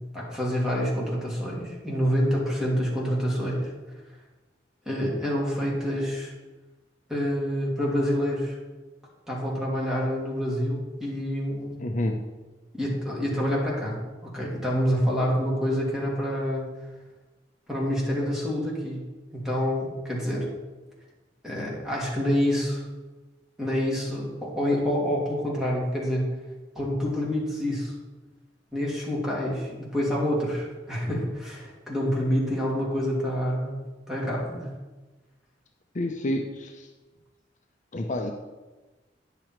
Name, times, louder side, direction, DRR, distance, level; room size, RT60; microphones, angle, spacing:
voice 1, 0.1-3.7 4.9-6.3 7.1-8.6 9.3-11.8 12.7-16.7 17.7-19.0 19.3-20.5 21.4-22.8 23.6-26.3 26.7-27.9 28.7-33.8 34.1-34.7, equal, 5° right, -5 dB, 2.6 m, -27 dB
voice 2, 11.8-12.2 35.9-36.9 37.9-38.3, left 1 dB, 45° left, 3 dB, 0.7 m, -29 dB
10.0 x 6.9 x 4.6 m, 1.2 s
head